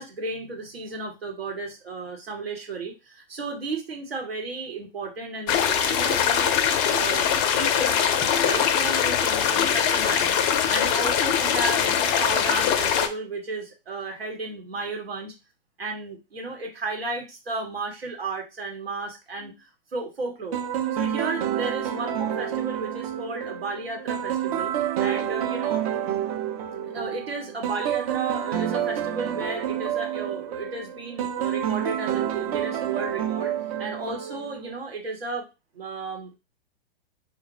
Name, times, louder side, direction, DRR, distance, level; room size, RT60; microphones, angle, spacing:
voice 1, 0.0-6.5 6.9-7.3 7.5-8.1 8.4-10.4 10.7-15.3 15.8-20.6 20.9-24.7 25.0-25.9 26.8-33.5 33.8-35.5 35.7-36.4, right 3 dB, 85° right, 2 dB, 1.3 m, -33 dB
sound 1, 5.5-13.1, left 8 dB, 30° left, 0.4 m, -22 dB
sound 2, 20.5-34.7, right 10 dB, 40° right, 0.5 m, -29 dB
4.0 x 2.2 x 3.2 m, 0.26 s
hypercardioid pair, 110°, 30 cm